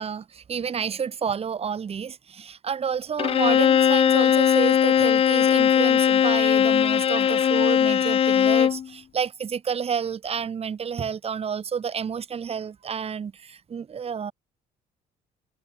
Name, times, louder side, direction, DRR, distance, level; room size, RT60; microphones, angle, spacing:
voice 1, 0.0-14.3, right 7 dB, 35° right, 2.2 m, -30 dB
Bowed string instrument, 3.2-8.9, left 8 dB, 35° left, 0.5 m, -19 dB
cardioid pair, 110°, 17 cm